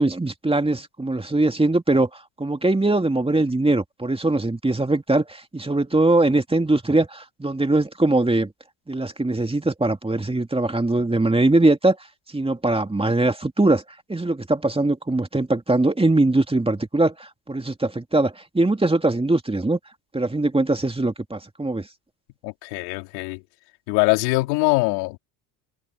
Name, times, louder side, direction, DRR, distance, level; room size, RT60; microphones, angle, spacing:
voice 1, 0.0-8.5 8.9-12.0 12.3-13.8 14.1-19.8 20.1-21.9, right 2 dB, 10° right, 2.4 m, -21 dB
voice 2, 22.4-23.4 23.9-25.2, left 26 dB, 85° left, 4.1 m, -22 dB
supercardioid pair, 75°, 47 cm